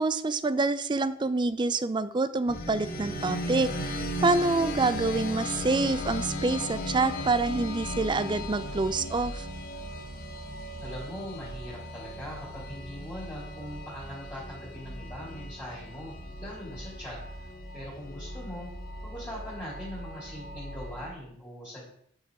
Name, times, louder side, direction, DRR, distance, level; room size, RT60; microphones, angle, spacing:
voice 1, 0.0-9.5, right 3 dB, 25° right, 14 dB, 0.4 m, -27 dB
sound 1, 2.5-21.1, left 1 dB, 45° left, 1.6 m, -37 dB
voice 2, 10.8-16.1 16.4-17.2 17.7-18.7 19.0-21.8, left 1 dB, 10° left, -8 dB, 3.3 m, -41 dB
8.1 x 6.5 x 4.8 m, 0.66 s
head